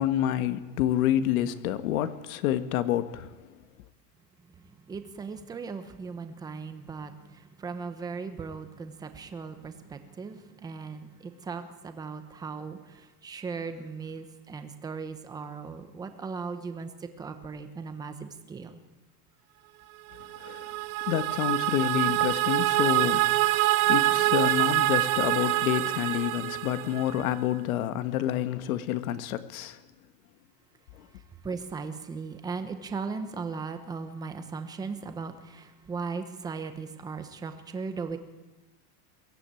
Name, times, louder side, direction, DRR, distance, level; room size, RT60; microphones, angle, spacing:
voice 1, 0.0-3.3 20.4-20.7 21.1-23.4 23.9-29.8, left 11 dB, 60° left, 1.7 m, -28 dB
voice 2, 4.9-12.8 13.2-16.9 17.2-18.8 31.4-38.2, right 5 dB, 10° right, 0.9 m, -37 dB
sound 1, 20.2-27.3, right 17 dB, 60° right, 1.2 m, -25 dB
23.0 x 16.5 x 9.1 m
supercardioid pair, 180°, 48 cm